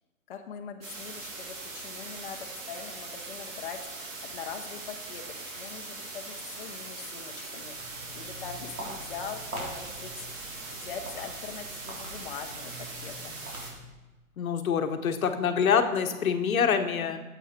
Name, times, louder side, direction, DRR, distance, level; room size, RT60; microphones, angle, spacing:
voice 1, 0.3-5.2 5.6-7.7 8.1-10.3 10.7-13.3, left 7 dB, 40° left, 3 dB, 0.8 m, -42 dB
sound 1, 0.8-13.7, right 3 dB, 65° right, 2.8 m, -41 dB
Walk footsteps, 7.5-14.0, right 1 dB, 80° right, 3.6 m, -44 dB
voice 2, 14.4-17.2, left 7 dB, 75° left, 7 dB, 1.2 m, -26 dB
11.0 x 8.0 x 4.4 m, 1.2 s
hypercardioid pair, 160°, 42 cm